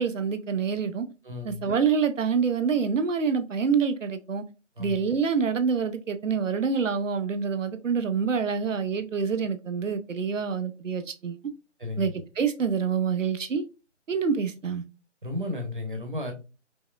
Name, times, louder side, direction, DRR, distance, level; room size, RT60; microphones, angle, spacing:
voice 1, 0.0-1.1 1.4-4.4 4.8-11.4 12.0-13.6 14.1-14.8, right 6 dB, 90° right, 0.7 m, -26 dB
voice 2, 1.2-1.6 4.8-5.0 11.8-12.1 15.2-16.3, left 2 dB, 45° right, 1.0 m, -33 dB
5.3 x 2.0 x 2.3 m
figure-of-eight pair, 180°, 37 cm